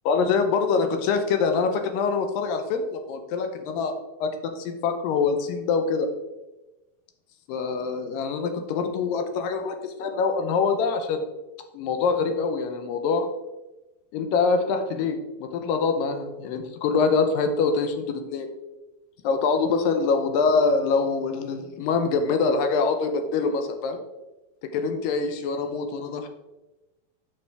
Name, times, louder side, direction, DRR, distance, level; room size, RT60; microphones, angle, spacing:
voice 1, 0.1-3.9 4.2-6.1 7.5-11.3 11.7-13.3 14.1-18.5 19.2-24.0 24.7-26.3, left 4 dB, 75° left, 6 dB, 2.1 m, -24 dB
8.4 x 5.5 x 3.4 m, 1.0 s
omnidirectional pair, 4.4 m